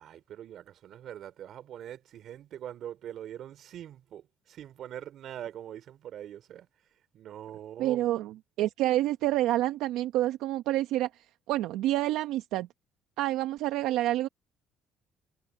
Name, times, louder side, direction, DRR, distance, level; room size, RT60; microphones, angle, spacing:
voice 1, 0.0-6.7 7.1-8.1, right 10 dB, 60° right, 2.9 m, -43 dB
voice 2, 7.8-12.7 13.2-14.3, right 15 dB, 80° right, 1.0 m, -28 dB
supercardioid pair, 85°, 0 cm